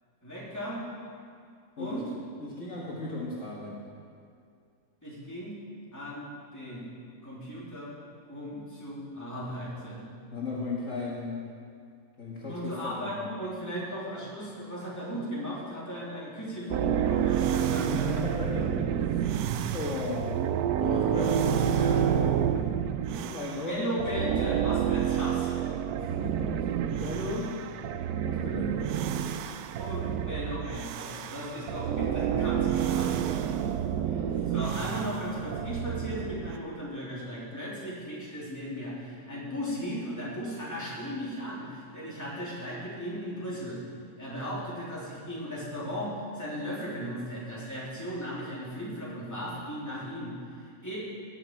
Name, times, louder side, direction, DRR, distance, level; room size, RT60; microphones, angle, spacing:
voice 1, 0.2-0.8 1.8-2.1 5.0-5.6 5.9-6.9 7.2-7.9 8.3-10.0 12.5-18.2 18.5-19.2 23.7-25.5 29.8-33.1 33.4-33.5 34.0-43.8 44.2-51.0, equal, 10° left, -8 dB, 3.2 m, -36 dB
voice 2, 2.4-3.8 10.3-11.4 12.2-13.1 17.8-18.8 19.7-20.4 20.8-22.4 23.1-24.0 25.9-27.6 28.2-28.8 32.5-33.4 34.2-34.4, left 2 dB, 55° left, -6 dB, 1.9 m, -36 dB
sound 1, 16.7-23.7 24.0-36.6, right 9 dB, 85° right, 1.1 m, -29 dB
17.5 x 8.0 x 4.6 m, 2.3 s
omnidirectional pair, 1.6 m